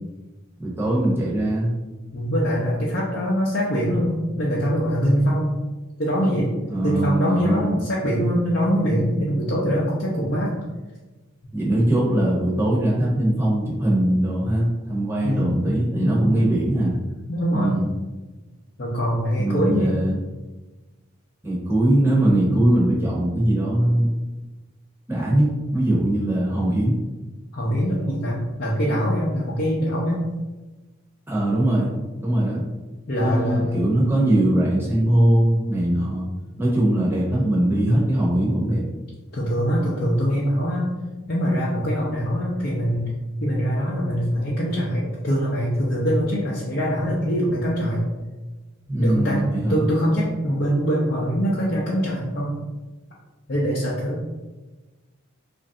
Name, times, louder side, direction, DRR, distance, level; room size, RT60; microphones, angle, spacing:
voice 1, 0.6-1.7 6.7-7.8 11.5-16.9 17.5-17.9 19.4-20.2 21.4-24.1 25.1-26.9 31.3-31.9 32.2-32.6 33.2-36.3 36.6-38.8 48.9-49.8, right 1 dB, 10° right, -5 dB, 0.8 m, -21 dB
voice 2, 2.1-5.5 6.0-6.5 6.8-10.5 15.2-15.6 16.0-16.4 17.3-17.7 18.8-19.9 27.5-30.2 33.1-33.8 39.3-40.9 41.3-43.1 43.4-48.0 49.0-49.4 49.7-52.6 53.5-54.2, equal, 50° left, -6 dB, 0.6 m, -23 dB
3.2 x 2.5 x 3.7 m, 1.2 s
head